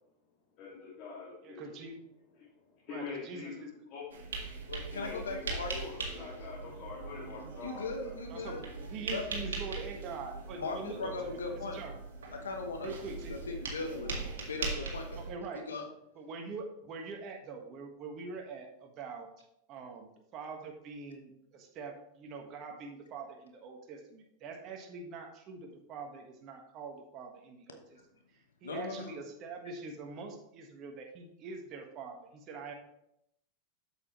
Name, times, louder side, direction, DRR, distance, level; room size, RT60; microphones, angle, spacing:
voice 1, 0.6-1.8 2.4-4.4 4.9-8.1, left 5 dB, 50° left, -6 dB, 2.3 m, -45 dB
voice 2, 1.4-2.0 2.9-3.7 8.3-8.6 8.9-11.4 11.7-11.9 12.8-13.3 15.1-15.7 16.1-28.0 28.6-32.7, right 4 dB, 45° right, 3 dB, 1.5 m, -44 dB
sound 1, 4.1-15.3, right 3 dB, 80° right, 1.9 m, -40 dB
voice 3, 4.7-6.1 7.6-8.6 9.1-9.2 10.5-11.8 12.4-12.9 13.3-15.3 15.7-15.9 28.6-29.1, left 3 dB, 85° left, 4 dB, 1.0 m, -39 dB
8.1 x 7.5 x 3.1 m, 0.78 s
hypercardioid pair, 95°, 0 cm